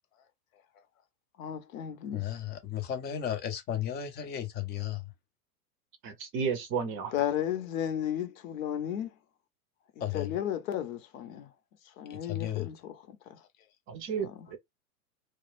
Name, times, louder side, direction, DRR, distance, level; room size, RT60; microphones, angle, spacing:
voice 1, 1.4-2.4 7.1-9.1 10.1-11.5 12.0-13.4 14.2-14.5, left 10 dB, 55° left, 0.7 m, -34 dB
voice 2, 2.1-5.1 10.0-10.4 12.1-12.7, left 10 dB, 20° left, 0.5 m, -34 dB
voice 3, 6.0-7.1 13.9-14.6, right 6 dB, 25° right, 0.6 m, -32 dB
2.3 x 2.0 x 3.1 m
hypercardioid pair, 115°, 48 cm